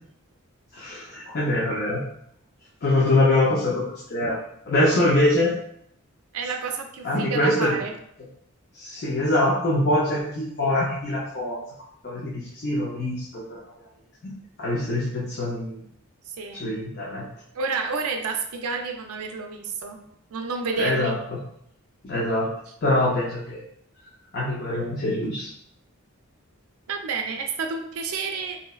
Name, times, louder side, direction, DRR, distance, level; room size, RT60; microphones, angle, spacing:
voice 1, 0.7-2.0 2.8-4.4 4.7-5.5 7.0-7.7 8.7-11.6 12.0-13.6 14.2-14.3 14.6-15.8 16.5-17.3 20.8-21.2 22.0-22.5 22.8-23.6 24.3-25.5, left 1 dB, 45° left, -5 dB, 0.5 m, -24 dB
voice 2, 6.3-7.9 16.3-16.7 17.5-20.0 20.3-21.2 26.9-28.6, right 4 dB, 80° right, 4 dB, 0.4 m, -30 dB
3.8 x 2.0 x 2.3 m, 0.70 s
head